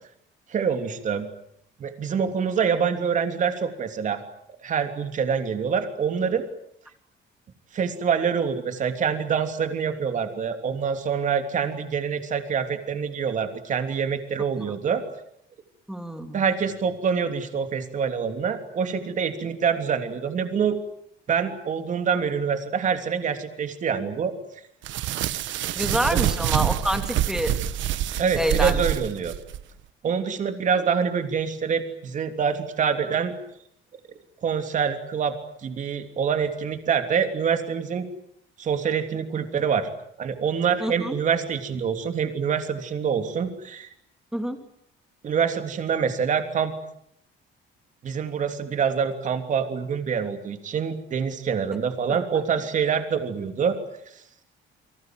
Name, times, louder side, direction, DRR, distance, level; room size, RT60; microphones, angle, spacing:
voice 1, 0.5-1.3 1.8-4.2 4.6-6.5 7.7-15.0 16.3-20.8 21.3-24.3 26.1-26.2 28.2-29.3 30.0-33.3 34.4-35.4 35.6-38.1 38.6-39.9 40.2-43.9 45.2-46.7 48.0-53.8, right 6 dB, 40° right, 7 dB, 3.1 m, -25 dB
voice 2, 15.9-16.4 25.7-27.6 28.4-28.8 40.8-41.1 44.3-44.6, equal, 5° right, 6 dB, 2.8 m, -27 dB
sound 1, 24.8-29.6, right 11 dB, 70° right, 1.4 m, -26 dB
29.5 x 25.0 x 7.8 m, 0.72 s
cardioid pair, 170°, 20 cm